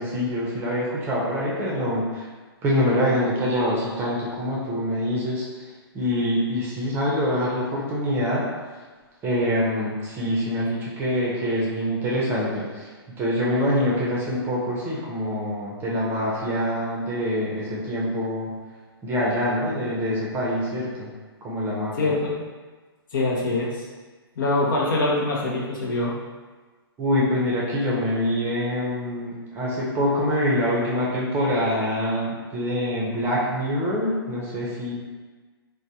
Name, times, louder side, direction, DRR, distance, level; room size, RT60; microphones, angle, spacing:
voice 1, 0.0-2.3 2.6-8.5 9.2-18.5 19.0-21.1 21.4-22.1 27.0-34.9, equal, 15° right, -5 dB, 0.6 m, -25 dB
voice 2, 22.0-22.4 23.1-23.9 24.4-26.2, left 2 dB, 55° left, -2 dB, 0.6 m, -24 dB
3.2 x 2.1 x 2.7 m, 1.3 s
hypercardioid pair, 130°, 13 cm